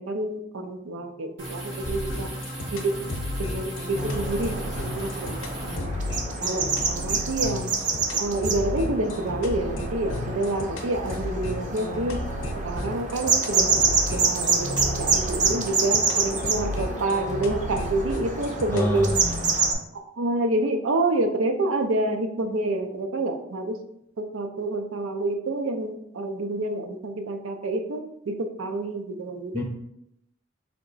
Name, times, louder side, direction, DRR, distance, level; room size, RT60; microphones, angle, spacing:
voice 1, 0.0-2.3 2.7-2.9 3.4-4.5 4.8-5.9 6.4-7.7 8.2-12.2 12.6-19.1 20.2-23.7 24.2-28.0 28.3-29.6, right 2 dB, 90° right, 7 dB, 0.5 m, -28 dB
sound 1, 1.4-5.8, right 1 dB, 70° right, 1.5 m, -36 dB
sound 2, 1.8-19.4, left 1 dB, 70° left, 0.6 m, -33 dB
sound 3, 4.0-19.7, right 4 dB, 40° right, 0.6 m, -27 dB
voice 2, 18.7-19.8 29.5-29.6, left 1 dB, 10° left, 0 dB, 0.5 m, -28 dB
3.4 x 2.9 x 4.0 m, 0.79 s
head